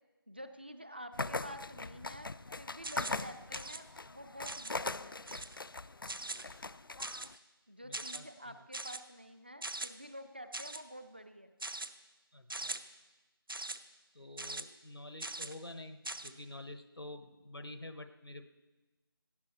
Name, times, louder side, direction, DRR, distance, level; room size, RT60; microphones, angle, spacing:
voice 1, 0.3-2.3 2.6-5.2 7.7-11.5, equal, 25° right, 9 dB, 0.4 m, -49 dB
sound 1, 1.1-7.3, left 3 dB, 65° left, 0.4 m, -41 dB
sound 2, 2.8-3.2 3.5-3.8 4.4-4.8 5.3-5.6 6.1-6.4 7.0-7.4 7.9-8.2 8.7-9.0 9.6-9.9 10.5-10.8 11.6-11.9 12.5-12.8 13.5-13.8 14.4-14.6 15.2-15.5 16.0-16.3, right 2 dB, 65° right, 0.7 m, -41 dB
voice 2, 7.8-8.5 12.3-12.7 14.1-18.5, left 2 dB, 80° left, 10 dB, 1.1 m, -48 dB
17.5 x 11.5 x 4.1 m, 1.2 s
figure-of-eight pair, 165°, 13 cm